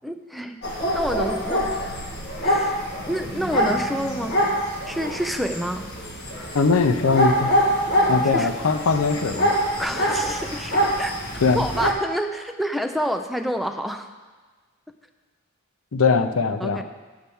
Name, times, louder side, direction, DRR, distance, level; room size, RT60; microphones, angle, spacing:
voice 1, 0.0-2.0 2.4-4.4 4.9-5.9 8.3-8.5 9.8-11.2 11.5-14.1 16.6-16.8, equal, ahead, 6 dB, 0.4 m, -28 dB
sound 1, 0.6-11.9, equal, 50° left, 1.7 m, -25 dB
voice 2, 6.5-7.5 8.1-9.5 11.4-11.6 15.9-16.8, left 4 dB, 90° left, 8 dB, 0.6 m, -20 dB
10.5 x 4.5 x 7.0 m, 1.4 s
head